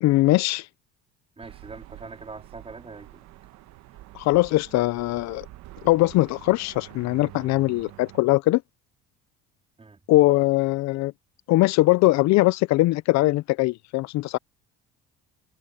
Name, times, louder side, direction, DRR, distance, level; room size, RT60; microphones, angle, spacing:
voice 1, 0.0-0.7 4.1-5.5 5.8-8.6 10.1-11.1 11.5-14.4, left 19 dB, 65° left, 0.5 m, -21 dB
voice 2, 1.4-3.2 9.8-10.0 10.3-10.4, right 4 dB, 20° right, 4.2 m, -42 dB
sound 1, 1.4-8.2, right 16 dB, 70° right, 1.3 m, -46 dB
cardioid pair, 105°, 29 cm